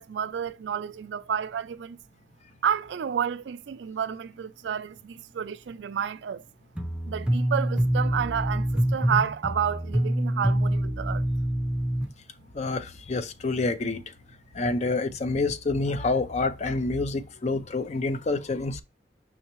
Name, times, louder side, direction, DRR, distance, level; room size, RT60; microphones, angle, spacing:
voice 1, 0.0-2.0 2.6-6.5 7.1-11.3, right 7 dB, 75° right, 0.4 m, -30 dB
sound 1, 6.8-12.1, right 1 dB, 5° right, 0.6 m, -26 dB
voice 2, 12.5-14.1 14.5-18.8, left 3 dB, 40° left, 0.5 m, -27 dB
5.5 x 3.2 x 3.0 m
head